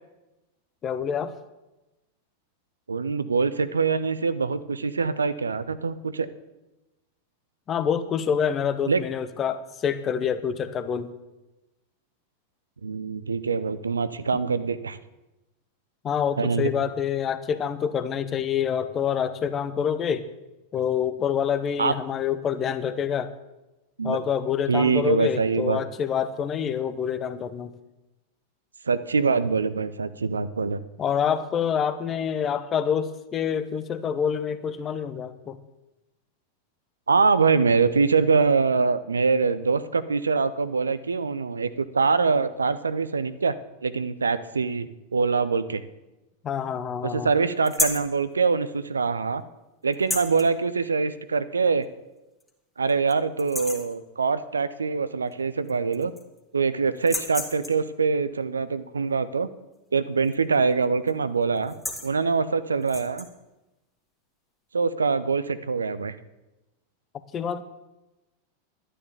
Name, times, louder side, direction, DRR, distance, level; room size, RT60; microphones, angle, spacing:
voice 1, 0.8-1.3 7.7-11.1 16.0-20.3 20.7-23.3 24.0-27.7 31.0-35.6 46.4-47.3 67.3-67.6, left 8 dB, 25° left, 12 dB, 1.0 m, -27 dB
voice 2, 2.9-6.3 8.9-9.0 12.8-15.0 16.4-16.7 21.8-21.9 24.0-24.2 24.7-25.8 28.9-30.8 37.1-43.5 43.8-44.9 45.1-45.8 47.0-49.4 49.8-51.9 52.8-56.1 56.5-59.5 59.9-61.7 62.0-63.3 64.7-66.1, right 4 dB, 75° right, 14 dB, 0.7 m, -24 dB
sound 1, 47.6-48.1 49.9-50.5 51.8-51.9 52.4-52.5 52.9-53.1 53.4-53.9 55.3-55.4 55.7-56.4 57.0-57.9 60.2-60.5 60.8-61.1 61.6-62.1 62.8-63.3, left 2 dB, 5° left, 1.8 m, -31 dB
12.0 x 10.0 x 7.0 m, 1.0 s
figure-of-eight pair, 90°, 0 cm